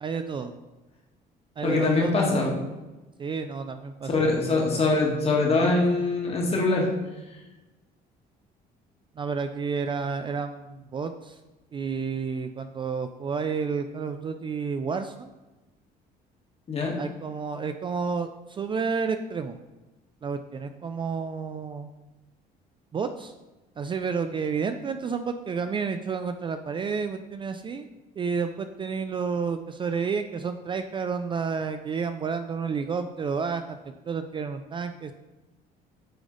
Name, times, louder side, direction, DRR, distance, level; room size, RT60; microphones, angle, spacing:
voice 1, 0.0-0.5 1.6-2.3 3.2-4.8 9.2-11.4 11.7-15.3 17.0-19.6 20.2-21.9 22.9-23.3 23.8-27.9 28.2-33.8 34.1-35.1, right 5 dB, 30° right, 8 dB, 0.3 m, -30 dB
voice 2, 1.6-2.6 4.1-6.9 16.7-17.0, left 3 dB, 35° left, -1 dB, 1.6 m, -23 dB
8.7 x 3.3 x 3.9 m, 1.1 s
cardioid pair, 110°, 17 cm